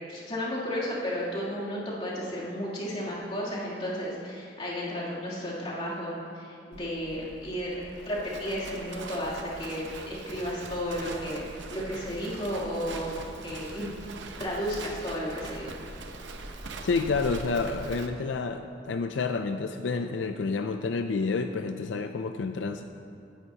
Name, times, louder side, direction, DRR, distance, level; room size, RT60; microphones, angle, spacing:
voice 1, 0.1-13.1 13.4-13.9 14.4-15.8, equal, 35° left, -8 dB, 3.0 m, -33 dB
Livestock farm animals working animals, 6.7-18.1, right 2 dB, 80° right, 0.8 m, -42 dB
voice 2, 16.8-22.8, left 4 dB, 85° left, 7 dB, 0.4 m, -29 dB
17.0 x 10.0 x 2.9 m, 2.5 s
head